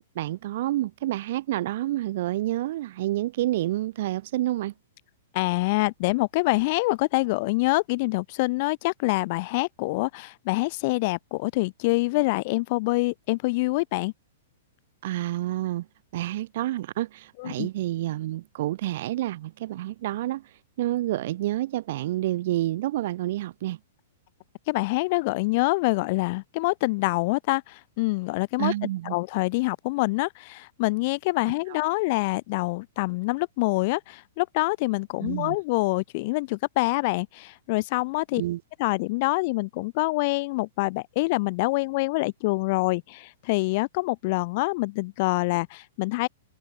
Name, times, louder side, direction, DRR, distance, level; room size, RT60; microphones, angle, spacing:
voice 1, 0.1-4.7 15.0-15.8 16.1-20.4 20.8-23.8 28.6-29.1 35.2-35.6 38.4-38.6, right 15 dB, 60° right, 6.4 m, -28 dB
voice 2, 5.3-14.1 17.4-17.7 24.7-28.7 29.1-38.4 38.8-46.3, left 24 dB, 50° left, 1.8 m, -26 dB
hypercardioid pair, 125°, 0 cm